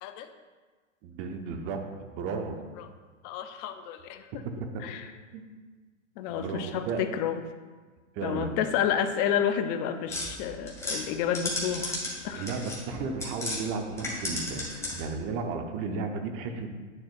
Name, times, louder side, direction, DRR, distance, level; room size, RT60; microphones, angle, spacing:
voice 1, 0.0-0.3 3.2-4.4 4.8-5.1 6.2-7.4 8.2-12.5 14.8-14.9, left 9 dB, 30° left, 9 dB, 0.5 m, -30 dB
voice 2, 1.0-1.8 2.1-2.6 4.7-4.8 5.3-5.4 6.3-7.0 8.1-8.5 12.3-16.7, right 4 dB, 35° right, 5 dB, 0.8 m, -34 dB
sound 1, 10.1-13.6 13.9-15.2, left 2 dB, 5° left, 2.1 m, -34 dB
9.6 x 6.0 x 2.5 m, 1.4 s
hypercardioid pair, 115°, 39 cm